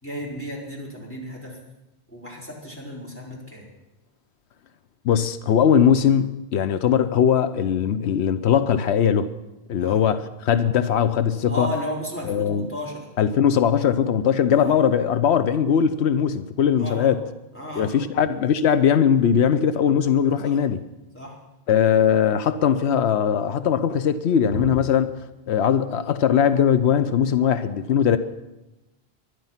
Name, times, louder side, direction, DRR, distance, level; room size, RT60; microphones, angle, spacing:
voice 1, 0.0-1.6 2.1-3.6 9.8-10.0 11.5-13.0 14.5-14.7 16.8-17.1 17.5-18.1 20.4-20.6 21.1-21.3 24.5-24.7, equal, 10° left, 4.5 m, -33 dB
voice 2, 5.0-9.3 9.7-11.7 12.2-12.7 13.2-17.2 17.8-20.8 21.7-25.1 25.5-28.2, left 8 dB, 90° left, 1.0 m, -20 dB
20.0 x 12.0 x 5.7 m
omnidirectional pair, 1.1 m